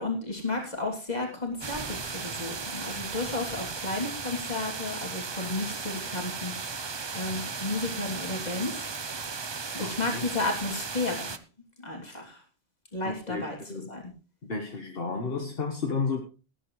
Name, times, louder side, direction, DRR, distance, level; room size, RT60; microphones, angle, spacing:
voice 1, 0.0-6.8 7.1-8.8 9.7-11.3 11.8-12.4 12.9-13.6 13.9-14.0, left 2 dB, 40° left, 1 dB, 3.2 m, -33 dB
sound 1, 1.6-11.4, right 5 dB, 30° right, 0.6 m, -36 dB
voice 2, 9.8-10.2 13.0-13.9 14.4-16.2, left 4 dB, 65° left, 2 dB, 1.6 m, -32 dB
18.0 x 10.0 x 3.2 m, 0.34 s
omnidirectional pair, 1.1 m